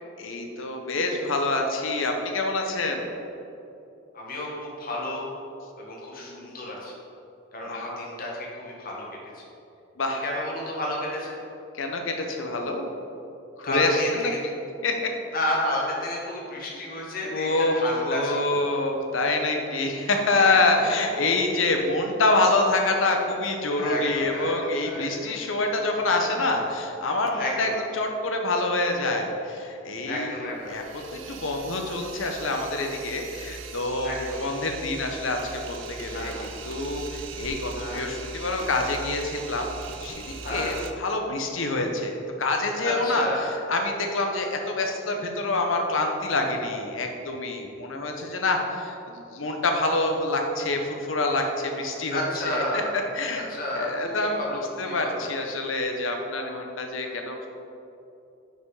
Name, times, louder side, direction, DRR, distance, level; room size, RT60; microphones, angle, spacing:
voice 1, 0.2-3.1 6.2-6.5 7.7-7.9 10.0-10.2 11.7-12.9 13.6-14.3 14.8-15.1 17.2-17.7 18.1-30.4 30.7-36.3 36.7-39.7 40.0-52.8 53.1-53.5 53.7-57.5, left 2 dB, 80° left, 3 dB, 0.9 m, -26 dB
voice 2, 4.1-5.3 5.8-6.9 7.5-9.1 9.3-9.4 10.2-11.4 13.6-14.4 15.3-18.6 20.4-21.3 23.7-25.4 27.4-27.7 30.0-30.7 34.0-34.5 36.1-36.5 37.7-38.0 40.4-40.7 42.8-43.5 52.1-52.9 53.3-55.3, left 1 dB, 50° left, -3 dB, 1.4 m, -31 dB
sound 1, 30.5-40.9, right 4 dB, 75° right, 0.5 m, -40 dB
6.0 x 5.3 x 4.8 m, 2.8 s
head